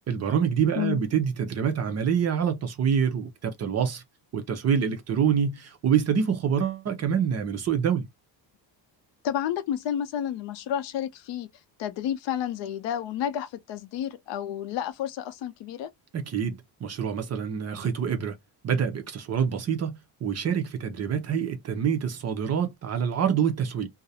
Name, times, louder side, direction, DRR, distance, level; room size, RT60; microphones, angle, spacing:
voice 1, 0.1-4.0 4.3-8.1 16.1-18.4 18.6-23.9, right 7 dB, 35° right, 0.5 m, -26 dB
voice 2, 9.2-11.5 11.8-15.9, left 10 dB, 70° left, 0.6 m, -30 dB
2.4 x 2.0 x 2.6 m
cardioid pair, 160°, 45 cm